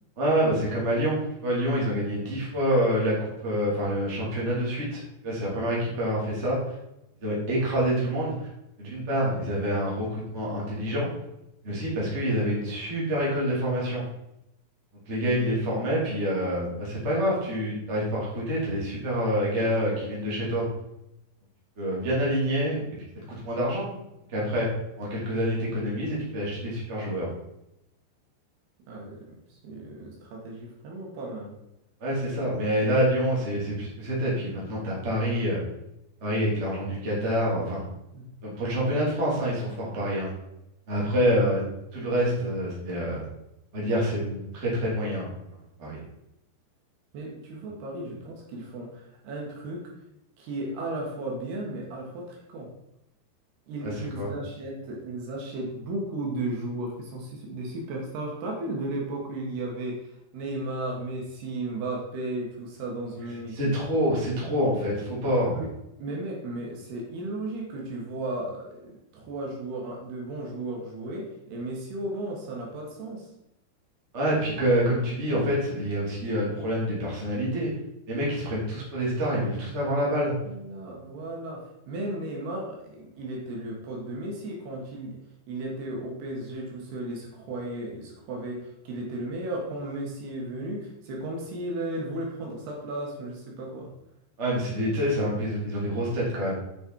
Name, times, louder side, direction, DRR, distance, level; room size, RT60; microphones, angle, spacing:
voice 1, 0.2-6.6 7.2-8.4 8.8-11.1 11.6-14.0 15.1-20.6 21.8-22.8 23.1-23.9 24.3-24.7 25.0-27.3 32.0-35.6 36.2-37.8 38.4-40.3 40.9-41.6 41.9-43.2 43.7-45.2 45.8-46.0 54.1-54.3 63.5-65.6 74.1-77.7 78.1-80.3 94.4-96.5, equal, 20° right, -5 dB, 2.4 m, -27 dB
voice 2, 28.9-29.2 29.5-31.6 38.1-38.2 38.9-39.0 41.2-41.5 47.1-49.8 50.4-52.7 53.7-63.7 65.5-65.7 66.0-73.3 80.5-85.2 85.5-93.9, right 1 dB, 70° right, -1 dB, 3.6 m, -35 dB
8.5 x 6.6 x 4.7 m, 0.86 s
omnidirectional pair, 5.0 m